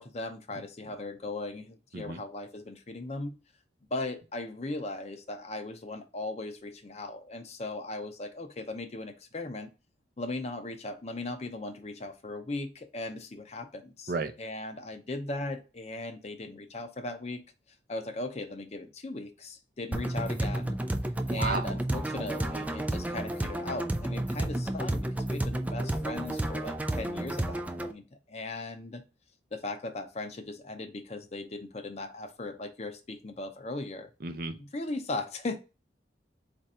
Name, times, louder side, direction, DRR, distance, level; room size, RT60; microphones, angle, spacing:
voice 1, 0.0-3.3 3.9-9.7 10.2-17.4 17.9-20.8 21.3-29.0 29.5-34.1 34.6-35.6, left 2 dB, 35° left, 0.6 m, -38 dB
sound 1, 19.9-27.9, right 1 dB, 10° right, 0.3 m, -31 dB
voice 2, 21.3-21.7 34.2-34.5, right 3 dB, 55° right, 0.6 m, -32 dB
4.4 x 2.6 x 4.2 m
head